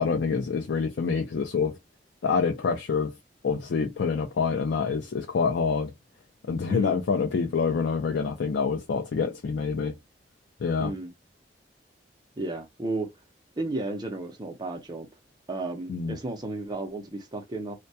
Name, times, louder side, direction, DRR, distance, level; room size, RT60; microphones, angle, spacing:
voice 1, 0.0-1.8 2.2-3.1 3.4-5.9 6.5-10.0 10.6-10.9 15.9-16.2, left 5 dB, 80° left, 0.4 m, -26 dB
voice 2, 10.8-11.1 12.4-13.1 13.6-15.1 15.5-17.7, right 2 dB, 25° right, 0.6 m, -33 dB
2.2 x 2.1 x 2.6 m
head